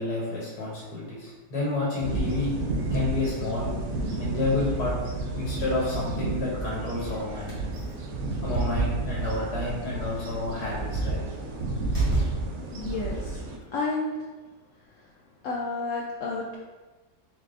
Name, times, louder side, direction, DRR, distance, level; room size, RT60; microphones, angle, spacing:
voice 1, 0.0-2.5 2.9-3.7 4.2-4.9 5.4-7.5 8.4-11.2, left 2 dB, 85° left, -6 dB, 1.4 m, -30 dB
sound 1, 2.0-13.6, right 2 dB, 75° right, 1.0 m, -30 dB
sound 2, 7.4-12.7, right 2 dB, 30° left, 0.6 m, -40 dB
voice 2, 12.7-13.4 13.7-14.2 14.9-15.0 15.4-16.5, left 3 dB, 70° left, -4 dB, 0.8 m, -31 dB
4.1 x 3.3 x 2.4 m, 1.3 s
omnidirectional pair, 1.6 m